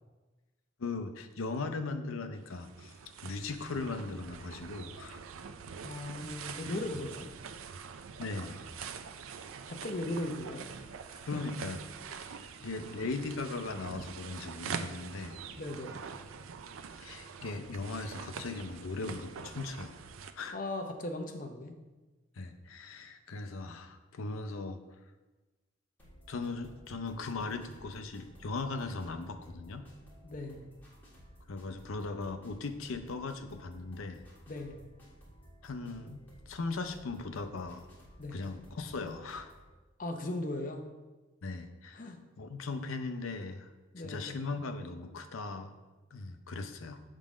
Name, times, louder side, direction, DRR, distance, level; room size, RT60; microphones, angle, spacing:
voice 1, 0.8-2.9 3.2-5.2 8.2-8.7 11.2-11.8 12.1-15.4 17.0-20.0 20.4-20.6 22.4-24.8 26.3-29.9 31.5-34.2 35.6-37.9 38.3-39.5 41.4-43.7 44.0-45.7 46.1-47.0, left 3 dB, 80° left, 8 dB, 0.6 m, -38 dB
sound 1, 2.3-20.3, right 6 dB, 80° right, 0.4 m, -44 dB
voice 2, 5.8-7.3 9.7-10.6 15.6-16.0 20.5-21.7 30.2-30.6 34.5-34.8 38.2-38.4 40.0-40.8 41.9-42.2 43.9-44.4, left 1 dB, 40° left, 4 dB, 0.6 m, -37 dB
sound 2, 26.0-39.7, equal, 10° left, 1.6 m, -56 dB
7.3 x 3.8 x 5.0 m, 1.2 s
head